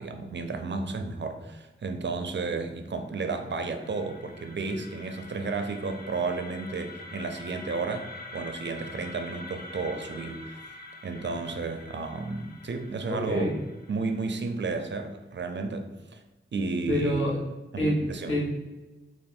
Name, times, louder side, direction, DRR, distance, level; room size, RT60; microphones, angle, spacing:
voice 1, 0.0-10.6 11.0-13.5 13.9-16.2 16.5-17.2 17.7-18.3, right 4 dB, 60° right, 6 dB, 0.5 m, -32 dB
sound 1, 3.0-14.9, left 2 dB, 45° left, 0.5 m, -46 dB
voice 2, 13.1-13.5 16.9-17.4 17.8-18.0 18.3-18.4, left 1 dB, 65° left, -7 dB, 1.2 m, -26 dB
3.2 x 2.4 x 4.2 m, 1.2 s
wide cardioid pair, 75°, 21 cm